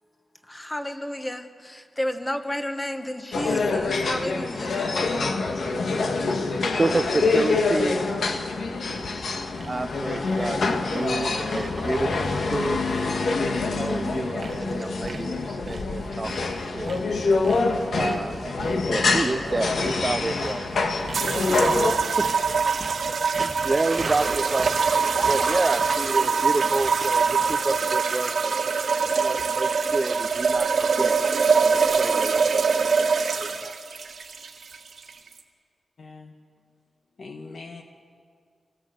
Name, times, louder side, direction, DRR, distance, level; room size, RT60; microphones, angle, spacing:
voice 1, 0.4-5.3, left 1 dB, 15° left, 1.2 m, -32 dB
sound 1, 3.3-21.9, left 3 dB, 75° left, 1.7 m, -26 dB
voice 2, 5.4-9.2 9.5-16.3 16.7-16.9 17.9-20.8 21.2-32.8 33.3-33.8, right 2 dB, 25° right, 0.6 m, -30 dB
Sawing, 8.3-26.1, right 4 dB, 50° right, 1.4 m, -42 dB
sound 2, 21.1-35.4, right 5 dB, 70° right, 1.9 m, -23 dB
voice 3, 36.0-36.3 37.2-37.8, left 3 dB, 60° left, 1.2 m, -41 dB
25.0 x 17.5 x 7.8 m
wide cardioid pair, 130°, 0 cm